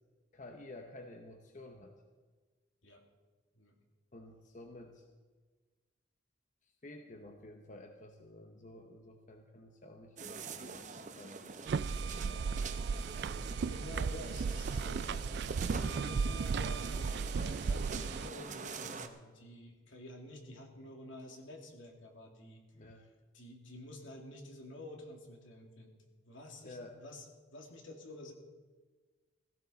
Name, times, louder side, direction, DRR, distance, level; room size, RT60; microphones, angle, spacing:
voice 1, 0.3-1.9 4.1-5.0 6.8-12.4 22.7-23.1 26.6-27.0, left 2 dB, 40° left, 4 dB, 1.0 m, -52 dB
sound 1, 10.2-19.1, right 4 dB, 40° right, 0.8 m, -45 dB
sound 2, 11.7-18.3, right 5 dB, 55° right, 0.3 m, -35 dB
voice 2, 13.7-23.1 23.3-25.9 26.2-28.3, left 1 dB, 80° left, 2 dB, 2.6 m, -50 dB
16.5 x 15.5 x 4.1 m, 1.4 s
head